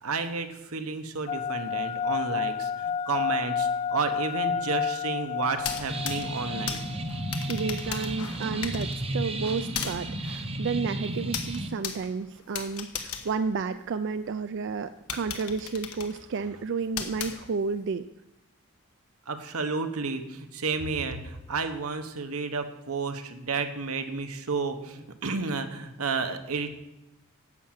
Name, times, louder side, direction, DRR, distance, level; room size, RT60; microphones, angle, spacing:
voice 1, 0.0-6.8 19.3-26.8, right 4 dB, 85° right, 7 dB, 1.2 m, -31 dB
sound 1, 1.3-7.9, left 6 dB, 30° left, 0.3 m, -31 dB
sound 2, 5.5-14.3 14.7-14.8 15.1-17.9, left 7 dB, 90° left, 1.4 m, -38 dB
sound 3, 5.9-11.7, right 1 dB, 25° right, 0.8 m, -33 dB
voice 2, 7.5-18.1, right 5 dB, 55° right, 11 dB, 0.4 m, -31 dB
11.0 x 7.7 x 7.4 m, 0.93 s
head